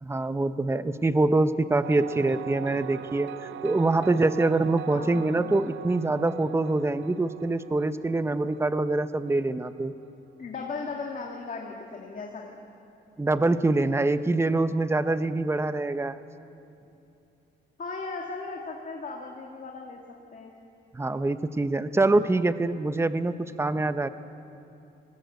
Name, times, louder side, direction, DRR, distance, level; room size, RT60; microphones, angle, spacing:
voice 1, 0.0-9.9 13.2-16.2 20.9-24.1, right 2 dB, 15° right, 12 dB, 0.8 m, -25 dB
sound 1, 1.8-9.3, right 12 dB, 75° right, 0.6 m, -41 dB
voice 2, 4.9-5.4 10.4-12.6 17.8-20.0 20.3-20.6, left 4 dB, 40° left, 0 dB, 2.1 m, -37 dB
20.0 x 18.0 x 8.2 m, 2.8 s
cardioid pair, 90°, 20 cm